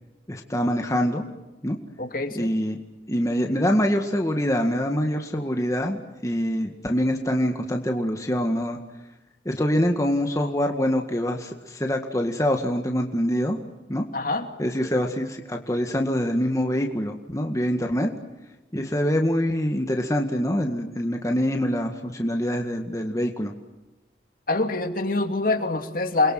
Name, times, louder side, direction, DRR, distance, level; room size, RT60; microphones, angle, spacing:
voice 1, 0.3-1.2 1.6-1.8 2.3-2.8 3.1-8.8 9.5-13.6 13.9-14.1 14.6-18.1 18.7-23.5, equal, 20° left, 3 dB, 1.9 m, -25 dB
voice 2, 2.0-2.5 14.1-14.5 24.5-26.3, left 2 dB, 50° left, 5 dB, 2.8 m, -25 dB
29.0 x 23.0 x 7.7 m, 1.1 s
head